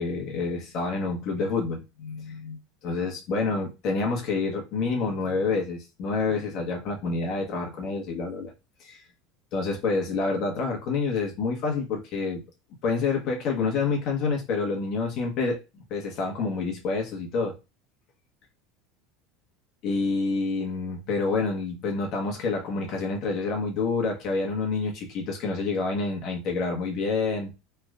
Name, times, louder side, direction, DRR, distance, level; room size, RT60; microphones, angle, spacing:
voice 1, 0.0-8.5 8.8-9.0 9.5-12.4 12.8-15.6 15.9-17.5 19.8-27.6, left 4 dB, 55° left, 1.1 m, -28 dB
3.3 x 3.0 x 2.4 m
supercardioid pair, 105°, 0 cm